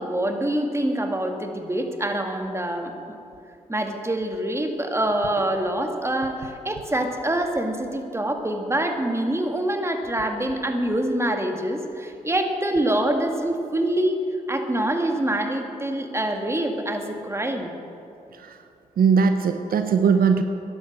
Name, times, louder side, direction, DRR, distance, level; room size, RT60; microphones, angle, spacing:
voice 1, 0.0-3.2 3.7-14.2 14.5-17.7, right 1 dB, 15° right, 4 dB, 2.0 m, -25 dB
voice 2, 19.0-20.4, right 6 dB, 75° right, 7 dB, 0.8 m, -19 dB
12.5 x 10.5 x 7.9 m, 2.7 s
supercardioid pair, 50°, 15 cm